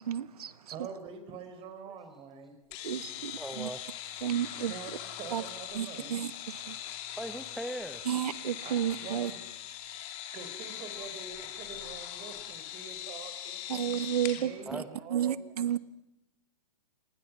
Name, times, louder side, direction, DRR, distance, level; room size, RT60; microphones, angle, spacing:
voice 1, 0.0-0.5 2.8-3.7 4.2-4.7 5.3-5.4 5.7-6.3 6.6-6.8 8.1-9.3 13.7-14.8 15.1-15.8, right 10 dB, 75° right, 1.3 m, -31 dB
voice 2, 0.7-2.6 4.7-6.2 8.6-9.4 10.3-13.9 14.3-15.5, right 6 dB, 30° right, 4.2 m, -45 dB
sound 1, 2.7-14.4, left 11 dB, 35° left, 2.7 m, -41 dB
voice 3, 3.4-3.8 7.2-8.0 11.0-11.1 14.7-14.9, equal, ahead, 1.0 m, -39 dB
28.0 x 20.0 x 6.1 m
hypercardioid pair, 140°, 20 cm